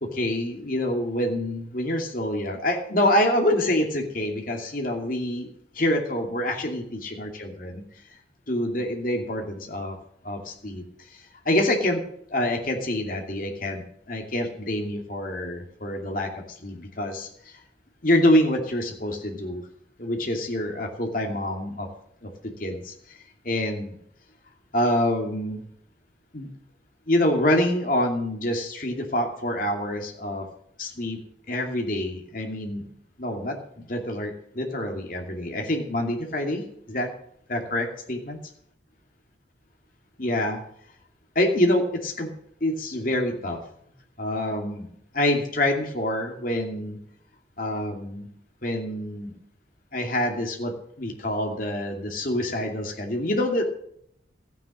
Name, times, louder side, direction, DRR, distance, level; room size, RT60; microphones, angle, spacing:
voice 1, 0.0-7.8 8.5-10.0 10.2-10.8 11.1-12.0 12.3-16.3 16.6-17.3 18.0-19.6 20.0-21.9 22.2-22.3 22.6-23.2 23.4-24.0 24.7-25.6 26.3-26.5 27.1-30.5 30.8-31.2 31.5-32.9 33.2-37.1 37.5-38.4 40.2-40.6 41.3-42.3 42.6-43.6 44.2-44.9 45.1-47.0 47.6-48.3 48.6-49.4 49.9-53.6, left 1 dB, 45° left, 2 dB, 2.6 m, -26 dB
14.0 x 9.4 x 6.4 m, 0.69 s
head